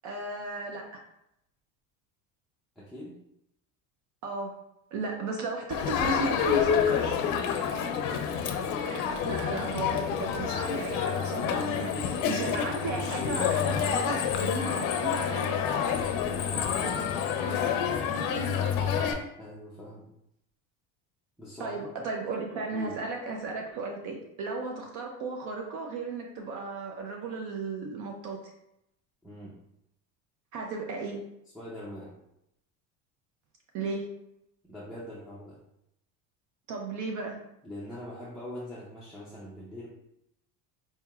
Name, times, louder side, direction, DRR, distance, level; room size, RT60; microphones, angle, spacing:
voice 1, 0.0-0.9 4.2-4.5 4.9-7.1 8.8-15.6 16.5-17.1 21.6-28.4 30.5-31.2 33.7-34.1 36.7-37.4, right 3 dB, 50° right, 1 dB, 0.6 m, -35 dB
voice 2, 2.8-3.2 7.8-8.0 8.2-8.4 19.4-20.1 21.4-22.1 22.7-23.0 29.2-29.6 31.5-32.1 34.7-35.6 37.6-39.9, left 1 dB, ahead, -8 dB, 0.4 m, -42 dB
Crowd, 5.7-19.1, left 7 dB, 60° left, 0.5 m, -28 dB
4.3 x 2.9 x 2.3 m, 0.81 s
cardioid pair, 145°, 37 cm